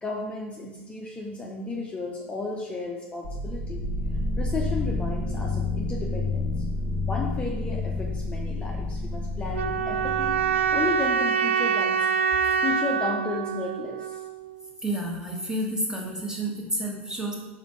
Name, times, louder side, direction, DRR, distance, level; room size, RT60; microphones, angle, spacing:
voice 1, 0.0-3.9 4.4-6.6 7.1-12.0 12.6-14.2, left 3 dB, 15° left, -2 dB, 0.8 m, -33 dB
sound 1, 3.2-11.1, left 2 dB, 45° right, 1.4 m, -29 dB
sound 2, 9.5-14.6, right 7 dB, 75° right, 0.4 m, -25 dB
voice 2, 14.8-17.3, right 1 dB, 10° right, -1 dB, 1.5 m, -30 dB
4.9 x 4.1 x 5.3 m, 1.1 s
hypercardioid pair, 90°, 7 cm